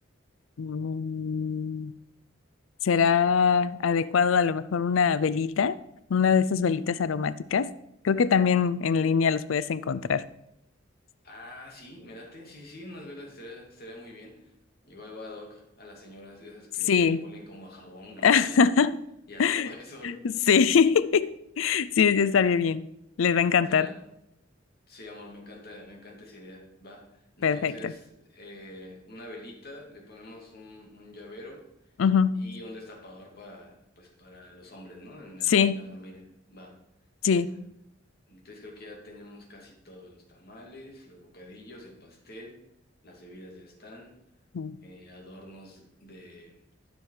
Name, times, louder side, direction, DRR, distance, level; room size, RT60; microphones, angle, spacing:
voice 1, 0.6-1.9 2.8-5.8 6.1-7.7 8.0-10.2 16.9-17.2 18.2-18.9 19.4-19.7 20.0-20.1 20.5-21.3 21.6-22.9 23.2-23.9 27.4-27.9 32.0-32.4 35.5-35.8 37.2-37.5 44.5-44.8, left 6 dB, 85° left, 16 dB, 0.5 m, -23 dB
voice 2, 11.2-14.5 14.8-18.7 19.3-20.2 23.7-24.1 24.9-31.6 32.3-36.7 37.3-37.6 38.3-42.6 43.0-44.1 44.8-46.6, left 1 dB, 55° left, 0 dB, 2.6 m, -46 dB
13.0 x 6.2 x 4.8 m, 0.80 s
head